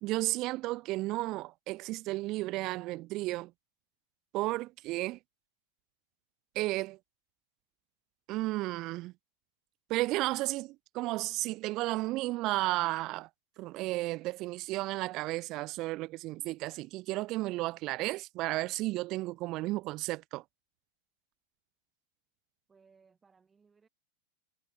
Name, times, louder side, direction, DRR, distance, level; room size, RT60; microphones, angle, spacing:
voice 1, 0.0-3.5 4.3-5.2 6.5-7.0 8.3-9.1 9.9-13.3 13.6-20.4, right 19 dB, 40° right, 0.5 m, -33 dB
voice 2, 22.7-23.9, right 5 dB, 15° right, 7.8 m, -64 dB
figure-of-eight pair, 90°, 0 cm